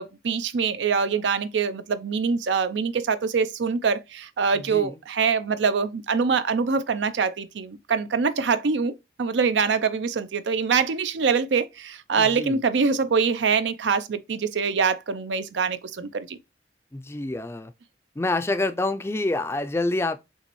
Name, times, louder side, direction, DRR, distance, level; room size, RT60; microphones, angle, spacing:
voice 1, 0.0-16.4, right 5 dB, 90° right, 0.5 m, -24 dB
voice 2, 12.2-12.6 16.9-17.7 18.2-20.2, left 2 dB, 15° left, 0.3 m, -27 dB
5.4 x 3.0 x 3.0 m
head